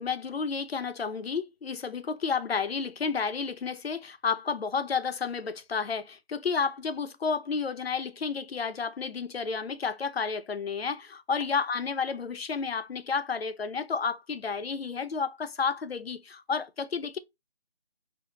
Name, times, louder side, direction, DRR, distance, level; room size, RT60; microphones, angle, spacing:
voice 1, 0.0-17.2, left 5 dB, 85° left, 0.6 m, -31 dB
4.5 x 2.1 x 2.4 m
figure-of-eight pair, 170°, 30 cm